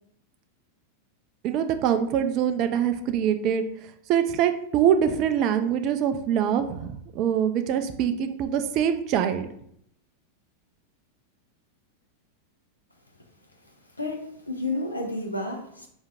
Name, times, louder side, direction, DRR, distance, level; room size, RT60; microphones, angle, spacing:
voice 1, 1.4-3.6 4.1-9.5, right 9 dB, 40° right, 8 dB, 0.4 m, -24 dB
voice 2, 14.0-15.9, left 2 dB, 80° left, 2 dB, 0.7 m, -31 dB
5.0 x 2.6 x 3.6 m, 0.70 s
figure-of-eight pair, 90°, 0 cm